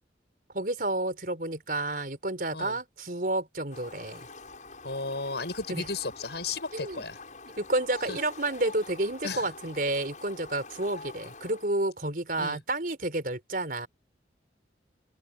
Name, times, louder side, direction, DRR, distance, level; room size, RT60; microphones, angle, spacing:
voice 1, 0.5-4.3 5.7-5.8 6.7-7.0 7.6-13.9, right 2 dB, 50° right, 4.9 m, -30 dB
Fowl, 3.7-11.7, left 3 dB, 45° left, 7.6 m, -46 dB
voice 2, 4.8-7.2 8.1-8.2 9.2-9.5 12.4-12.6, left 3 dB, 70° left, 6.8 m, -34 dB
open air
head